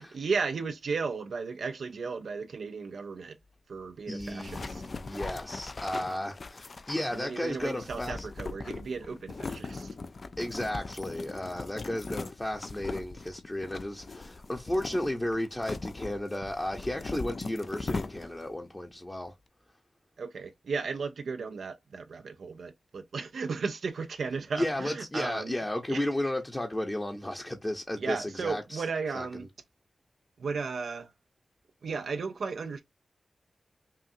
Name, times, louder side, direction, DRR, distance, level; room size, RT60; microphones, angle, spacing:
voice 1, 0.0-3.4 3.7-4.8 7.1-9.9 20.2-25.6 25.9-26.1 28.0-29.5 30.4-31.1 31.8-32.8, right 5 dB, 85° right, 0.5 m, -35 dB
voice 2, 4.1-8.3 10.4-19.3 24.6-28.8 29.1-29.3, left 1 dB, 20° left, 0.8 m, -33 dB
sound 1, 4.2-18.5, left 3 dB, 55° left, 0.4 m, -40 dB
5.6 x 2.5 x 2.6 m
cardioid pair, 50°, 0 cm